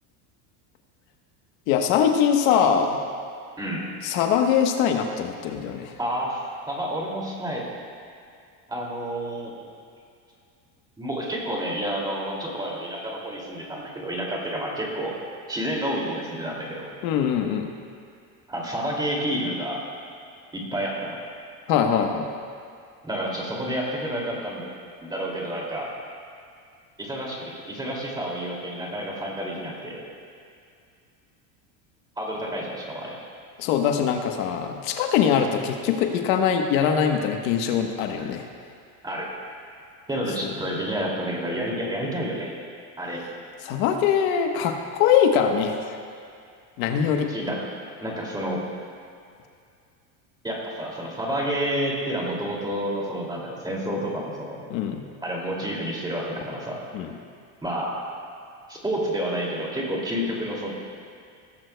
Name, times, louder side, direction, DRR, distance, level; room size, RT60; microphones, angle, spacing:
voice 1, 1.7-3.0 4.0-5.9 17.0-17.7 21.7-22.3 33.6-38.5 40.4-40.5 43.6-46.0 46.8-47.3 54.7-55.0 56.9-57.1, left 8 dB, 80° left, 4 dB, 1.2 m, -22 dB
voice 2, 3.6-3.9 6.0-7.7 8.7-9.5 11.0-15.2 15.5-16.9 18.5-19.8 20.5-21.2 23.0-24.7 25.0-25.9 27.0-30.0 32.2-33.2 39.0-39.3 40.1-42.5 43.0-43.2 47.3-47.6 48.0-48.6 50.4-54.7 55.2-56.8 57.6-58.1 58.7-60.7, equal, 10° right, -3 dB, 2.5 m, -29 dB
17.0 x 14.5 x 2.2 m, 2.3 s
cardioid pair, 140°, 41 cm